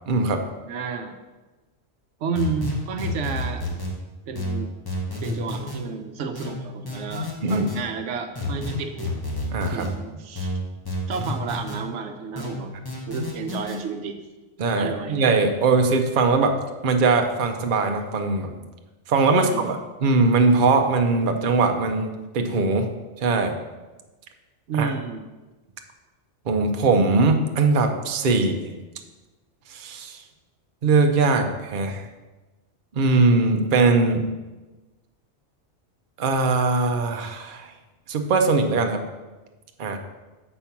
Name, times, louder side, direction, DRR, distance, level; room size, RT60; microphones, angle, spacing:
voice 1, 0.1-0.4 7.4-7.7 9.5-9.9 14.6-18.6 19.1-22.9 23.2-23.5 24.8-24.9 26.5-28.7 29.7-30.2 30.8-32.0 32.9-34.3 36.2-37.7 38.1-39.0 39.8-40.0, right 3 dB, 50° right, 4 dB, 0.8 m, -21 dB
voice 2, 0.7-1.1 2.2-3.6 4.3-4.7 5.2-9.1 9.7-10.6 11.1-12.7 13.1-14.2 14.8-15.2 19.3-19.7 24.7-25.3, right 5 dB, 80° right, 7 dB, 1.0 m, -31 dB
sound 1, 2.3-3.9 4.3-5.8 6.3-7.8 8.3-9.9 10.3-11.8 12.3-13.8, left 2 dB, 20° left, 1.4 m, -30 dB
7.2 x 4.5 x 5.8 m, 1.2 s
omnidirectional pair, 1.2 m